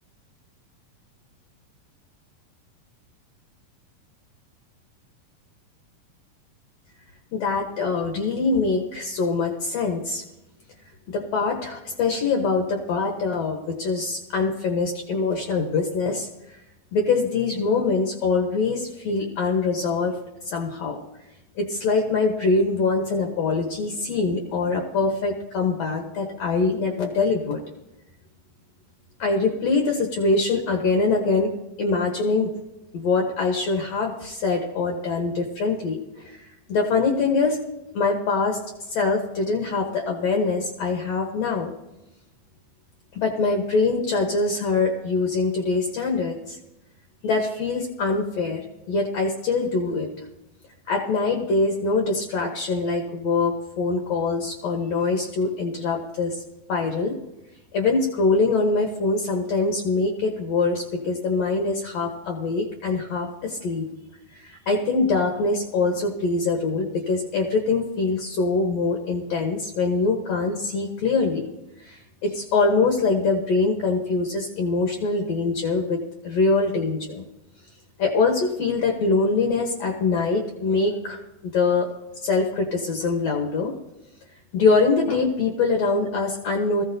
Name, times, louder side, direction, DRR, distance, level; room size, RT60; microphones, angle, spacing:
voice 1, 7.3-10.2 11.1-16.3 16.9-20.1 20.4-21.0 21.6-27.6 29.2-32.5 32.9-37.6 37.9-38.6 38.9-41.7 43.1-46.6 47.2-50.1 50.9-56.4 56.7-57.2 57.7-63.9 64.3-71.5 71.8-77.2 78.0-81.9 82.2-83.7 84.5-86.8, left 3 dB, 65° left, 3 dB, 1.8 m, -24 dB
19.0 x 14.5 x 2.6 m, 0.96 s
omnidirectional pair, 4.0 m